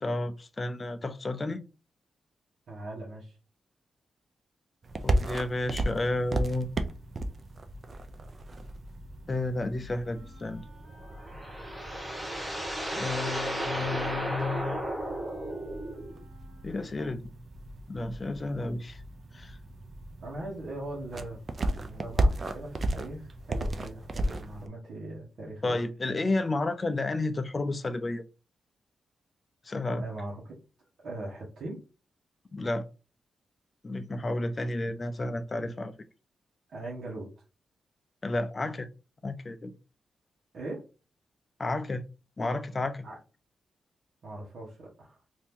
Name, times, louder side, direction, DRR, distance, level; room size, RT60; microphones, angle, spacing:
voice 1, 0.0-1.6 5.0-6.7 9.3-10.6 12.9-14.8 16.6-17.3 17.9-19.0 19.3-19.6 25.6-28.2 29.7-30.0 32.5-32.9 33.8-35.9 38.2-38.9 39.2-39.7 41.6-42.0 42.4-43.0, left 2 dB, 30° left, 0.4 m, -31 dB
voice 2, 2.7-3.4 20.2-21.4 21.8-25.8 30.0-30.5 31.0-31.8 36.7-37.3 40.5-40.8 43.0-43.2 44.2-45.2, right 2 dB, 70° right, 1.1 m, -40 dB
sound 1, 4.8-24.7, right 1 dB, 40° right, 0.4 m, -35 dB
Wind instrument woodwind instrument, 10.0-17.0, equal, 55° right, 1.5 m, -56 dB
sound 2, 11.0-16.2, right 1 dB, 5° right, 0.9 m, -34 dB
2.8 x 2.6 x 3.5 m
wide cardioid pair, 115°, 0 cm